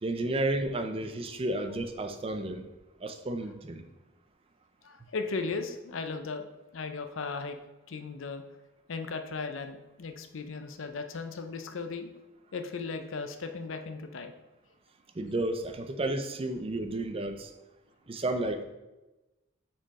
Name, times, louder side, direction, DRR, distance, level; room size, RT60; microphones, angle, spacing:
voice 1, 0.0-2.7 3.0-3.8 15.1-17.5 18.1-18.6, right 2 dB, 25° right, 7 dB, 0.5 m, -32 dB
voice 2, 4.8-6.4 6.7-7.6 7.9-8.4 8.9-12.1 12.5-14.3, left 4 dB, 70° left, 7 dB, 0.5 m, -36 dB
6.3 x 4.4 x 4.1 m, 1.1 s
head